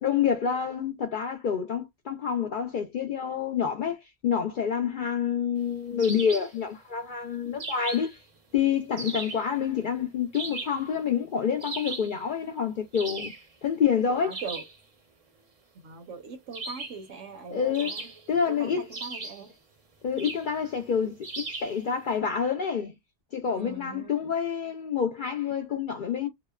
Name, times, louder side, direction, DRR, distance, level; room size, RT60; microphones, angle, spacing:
voice 1, 0.0-8.2 8.5-13.3 13.6-14.4 17.5-18.0 18.3-18.8 20.0-21.2 21.6-22.9 23.3-26.3, left 7 dB, 60° left, 0.5 m, -27 dB
sound 1, 6.0-6.6 7.6-8.2 9.0-9.5 10.3-10.9 11.6-12.2 12.9-13.4 14.3-14.8 16.5-17.1 17.7-18.4 18.9-19.5 20.2-20.5 21.2-21.8, right 3 dB, 40° right, 0.5 m, -37 dB
voice 2, 14.2-14.6 15.8-18.1 18.5-19.5 23.4-24.1, right 5 dB, 80° right, 1.2 m, -41 dB
2.8 x 2.1 x 2.2 m
omnidirectional pair, 1.3 m